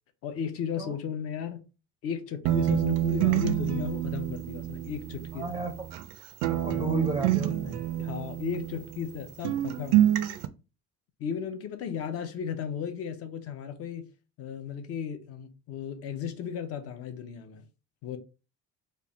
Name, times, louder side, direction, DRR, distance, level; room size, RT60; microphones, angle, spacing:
voice 1, 0.2-1.7 2.0-5.6 8.0-10.0 11.2-14.1 14.4-17.7 18.0-18.2, left 8 dB, 50° left, 0.6 m, -35 dB
sound 1, 2.5-6.1 6.4-9.2 9.4-10.5, right 13 dB, 75° right, 0.5 m, -27 dB
voice 2, 5.3-5.7 6.5-7.8, right 1 dB, 15° right, 0.5 m, -33 dB
3.2 x 2.4 x 4.0 m
cardioid pair, 175°, 31 cm